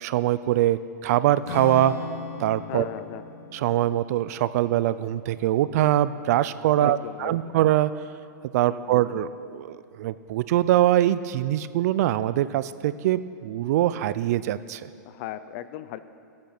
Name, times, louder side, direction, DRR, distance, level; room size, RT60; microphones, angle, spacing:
voice 1, 0.0-1.9 2.4-2.8 3.5-7.9 8.5-14.9, right 13 dB, 55° right, 15 dB, 0.5 m, -23 dB
Acoustic guitar / Strum, 1.4-6.2, left 3 dB, 60° left, 3.3 m, -39 dB
voice 2, 2.7-3.2 6.8-7.6 8.7-9.0 15.0-16.0, left 12 dB, 45° left, 13 dB, 0.6 m, -37 dB
15.0 x 8.6 x 6.0 m, 2.3 s
hypercardioid pair, 145°, 10 cm